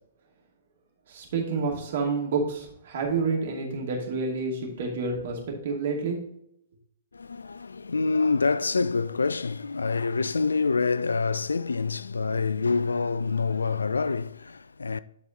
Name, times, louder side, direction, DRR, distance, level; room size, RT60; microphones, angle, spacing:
voice 1, 1.1-6.2, right 4 dB, 55° right, 2.5 m, -29 dB
voice 2, 7.1-15.0, left 4 dB, 80° left, 0.3 m, -26 dB
10.5 x 4.3 x 3.8 m
figure-of-eight pair, 120°, 0 cm